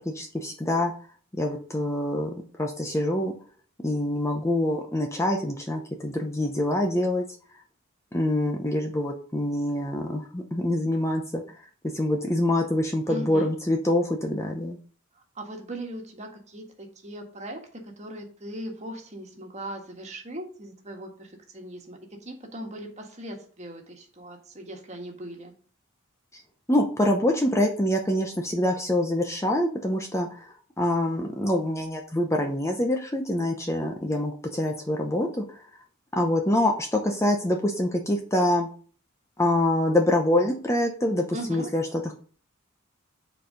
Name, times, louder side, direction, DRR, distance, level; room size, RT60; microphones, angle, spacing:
voice 1, 0.1-0.9 1.3-3.3 3.8-7.2 8.1-11.4 11.9-14.8 26.3-26.4 26.7-30.5 30.8-35.6 36.1-38.7 39.4-42.1, left 1 dB, 15° left, 3 dB, 0.7 m, -25 dB
voice 2, 13.1-13.5 15.4-25.5 41.3-41.7, right 1 dB, 30° right, 2 dB, 1.6 m, -39 dB
8.0 x 4.5 x 5.1 m, 0.42 s
head